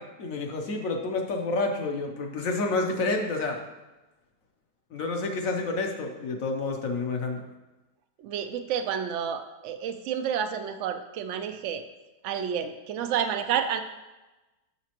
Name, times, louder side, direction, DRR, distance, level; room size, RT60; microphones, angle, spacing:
voice 1, 0.0-3.6 4.9-7.4, left 3 dB, 60° left, 3 dB, 1.1 m, -29 dB
voice 2, 8.2-11.8 12.2-13.8, right 8 dB, 75° right, 8 dB, 0.7 m, -30 dB
7.1 x 6.5 x 3.0 m, 1.1 s
omnidirectional pair, 1.8 m